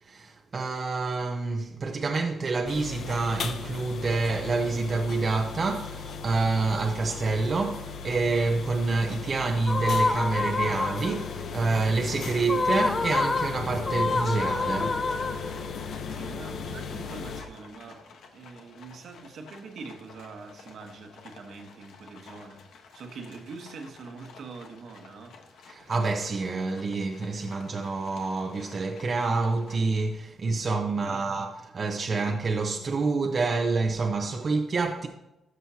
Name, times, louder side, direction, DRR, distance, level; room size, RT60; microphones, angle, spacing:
voice 1, 0.0-15.0 25.7-31.5 31.7-35.1, right 3 dB, 40° right, 0.7 m, -27 dB
sound 1, 2.7-17.4, left 5 dB, 65° left, 0.8 m, -37 dB
sound 2, 9.7-11.3 12.4-15.8, left 3 dB, 30° left, 0.6 m, -28 dB
Livestock farm animals working animals, 13.9-30.2, left 5 dB, 80° left, 1.2 m, -52 dB
voice 2, 16.1-25.4 25.8-25.9 30.9-31.3 32.1-32.3, right 4 dB, 65° right, 1.2 m, -44 dB
13.0 x 6.2 x 2.8 m
cardioid pair, 115°, 0 cm